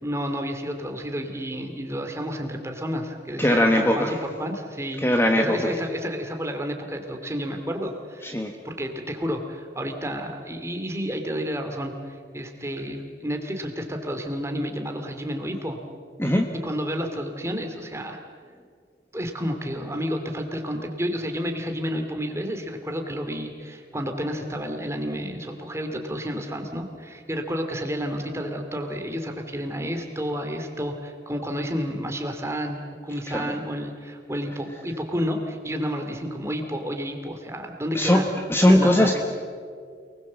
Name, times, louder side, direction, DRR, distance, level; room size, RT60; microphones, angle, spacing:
voice 1, 0.0-8.3 8.6-15.8 16.6-18.2 19.1-38.3 38.7-39.1, equal, 15° right, 4 dB, 2.4 m, -30 dB
voice 2, 3.4-4.2 5.0-5.7 8.2-8.5 16.2-16.5 33.3-33.5 37.9-38.2 38.5-39.2, left 1 dB, 15° left, 3 dB, 1.2 m, -20 dB
28.5 x 20.5 x 7.4 m, 2.1 s
head